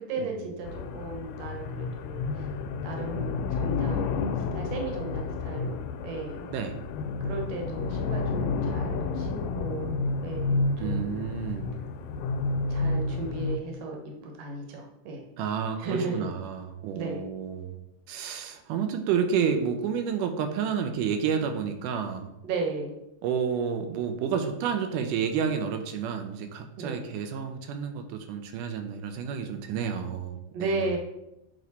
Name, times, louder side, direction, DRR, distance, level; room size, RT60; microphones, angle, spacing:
voice 1, 0.1-2.5 2.8-5.8 6.0-6.5 7.2-11.1 12.7-15.2 15.8-16.3 16.9-17.2 18.3-18.4 22.4-22.9 26.8-27.0 30.5-31.0, right 3 dB, 60° right, 1 dB, 2.0 m, -35 dB
sound 1, 0.6-13.6, left 4 dB, 90° left, 2.1 m, -30 dB
voice 2, 10.8-11.8 15.4-17.8 18.1-22.3 23.2-30.8, right 7 dB, 90° right, 6 dB, 2.1 m, -30 dB
9.1 x 3.1 x 4.0 m, 0.87 s
omnidirectional pair, 3.7 m